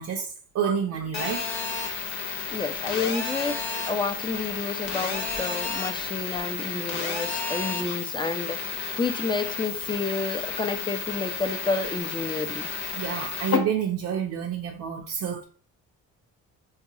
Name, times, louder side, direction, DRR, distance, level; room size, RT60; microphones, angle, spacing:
voice 1, 0.0-1.4 12.9-15.4, right 7 dB, 65° right, 0.6 m, -29 dB
Telephone, 1.1-13.6, left 5 dB, 70° left, 0.9 m, -31 dB
voice 2, 2.5-12.7, left 4 dB, 15° left, 0.5 m, -30 dB
4.0 x 2.3 x 2.7 m
cardioid pair, 90°, 30 cm